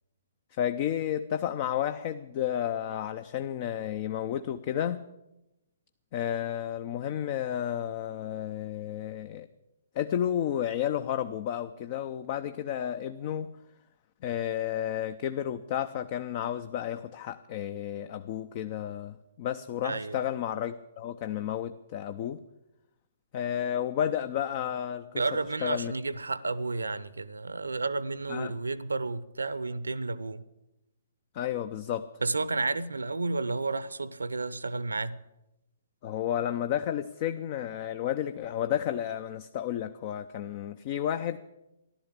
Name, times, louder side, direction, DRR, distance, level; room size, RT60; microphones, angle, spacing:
voice 1, 0.5-5.0 6.1-9.5 9.9-13.5 14.2-22.4 23.3-25.2 25.6-25.9 28.3-28.5 31.3-32.1 36.0-41.4, left 10 dB, 35° left, 0.6 m, -32 dB
voice 2, 19.8-20.2 25.1-30.4 32.2-35.2, right 3 dB, 70° right, 0.8 m, -31 dB
14.5 x 12.0 x 8.4 m
figure-of-eight pair, 125°, 0 cm